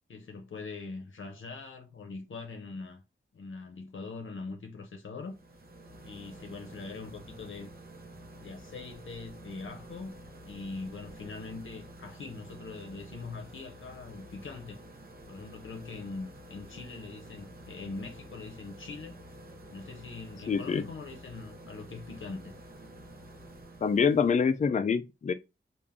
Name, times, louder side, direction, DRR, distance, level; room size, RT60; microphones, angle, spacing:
voice 1, 0.1-3.0 3.3-5.4 6.0-7.7 8.4-14.8 15.3-19.2 19.7-22.5, left 3 dB, 75° left, 0.7 m, -42 dB
sound 1, 5.2-24.6, right 1 dB, 50° right, 0.8 m, -49 dB
voice 2, 20.5-20.8 23.8-25.3, left 6 dB, 35° left, 0.4 m, -25 dB
3.5 x 2.5 x 3.6 m
wide cardioid pair, 60°, 20 cm